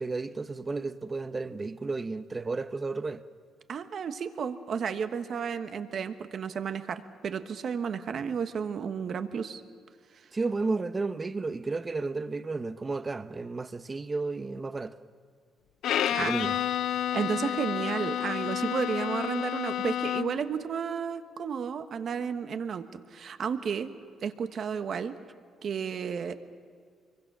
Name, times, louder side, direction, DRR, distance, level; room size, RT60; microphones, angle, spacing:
voice 1, 0.0-3.2 10.3-15.0 16.1-16.6, right 3 dB, 25° right, 0.9 m, -32 dB
voice 2, 3.7-9.6 16.1-16.3 17.1-23.9 24.2-25.2 25.6-26.3, right 6 dB, 55° right, 1.3 m, -32 dB
Bowed string instrument, 15.8-20.5, left 11 dB, 75° left, 0.5 m, -30 dB
25.0 x 23.0 x 6.2 m
cardioid pair, 90°, 0 cm